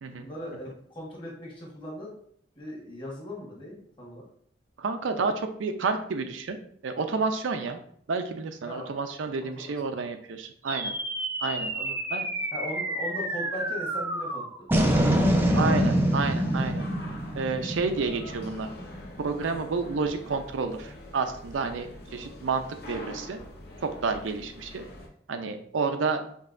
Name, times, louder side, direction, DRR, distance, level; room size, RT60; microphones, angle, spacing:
voice 1, 0.0-2.1 2.6-4.3 8.6-9.2 9.5-9.7 11.5-11.9 12.5-14.4, equal, 25° left, -3 dB, 1.2 m, -39 dB
voice 2, 4.8-6.6 6.8-7.8 8.1-11.0 11.4-11.7 12.1-12.3 15.5-16.9 17.3-18.7 19.2-23.4 23.8-24.8 25.3-26.3, right 4 dB, 90° right, 7 dB, 0.5 m, -30 dB
sound 1, 10.7-19.3, right 1 dB, 10° right, 0.4 m, -27 dB
sound 2, 16.1-25.1, left 1 dB, 55° left, 0.7 m, -44 dB
5.3 x 2.7 x 2.5 m, 0.62 s
head